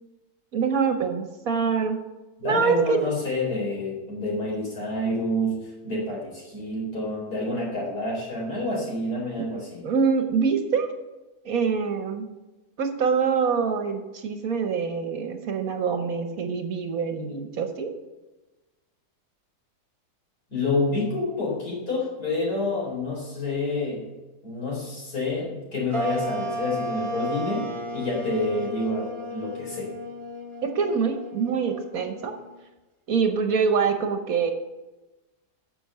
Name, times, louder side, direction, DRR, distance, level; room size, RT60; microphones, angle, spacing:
voice 1, 0.5-2.0 2.4-3.1 9.8-10.9 11.4-12.3 12.8-17.9 30.6-32.3 33.1-34.5, right 5 dB, 60° right, 6 dB, 1.4 m, -25 dB
voice 2, 2.4-9.8 20.5-24.1 24.4-29.9, left 2 dB, 70° left, -3 dB, 4.7 m, -28 dB
sound 1, 25.9-32.6, right 1 dB, 20° right, 1.6 m, -34 dB
9.9 x 6.9 x 6.8 m, 1.1 s
omnidirectional pair, 1.7 m